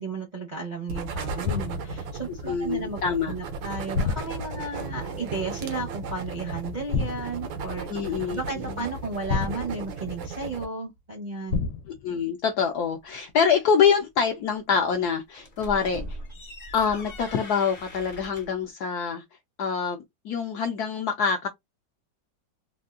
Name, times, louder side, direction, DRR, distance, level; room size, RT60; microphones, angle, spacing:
voice 1, 0.0-3.0 3.3-11.6, right 3 dB, 40° right, 0.6 m, -34 dB
sound 1, 0.9-10.7, right 4 dB, 85° right, 1.5 m, -35 dB
sound 2, 1.4-2.0 3.9-4.7 6.9-7.5 9.3-10.1 11.5-12.1, left 4 dB, 85° left, 1.4 m, -29 dB
voice 2, 2.5-3.3 7.9-8.4 12.0-16.2 16.7-19.2 19.6-21.5, left 6 dB, 70° left, 1.0 m, -25 dB
sound 3, 15.4-18.6, equal, 45° left, 0.5 m, -40 dB
3.6 x 2.3 x 2.4 m
omnidirectional pair, 2.1 m